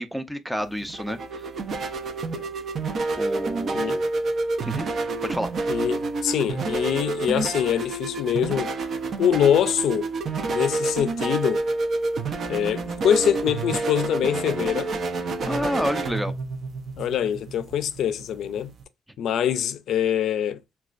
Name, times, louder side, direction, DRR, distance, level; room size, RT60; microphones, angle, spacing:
voice 1, 0.0-1.4 3.2-4.0 4.7-4.9 5.2-5.5 15.4-16.3, equal, ahead, 0.4 m, -29 dB
sound 1, 0.6-18.8, right 3 dB, 55° right, 0.5 m, -28 dB
voice 2, 5.7-8.7 9.2-10.1 10.5-11.6 12.5-14.9 17.0-18.7 19.2-20.6, left 9 dB, 75° left, 0.4 m, -24 dB
4.0 x 2.2 x 2.4 m
cardioid pair, 110°, 0 cm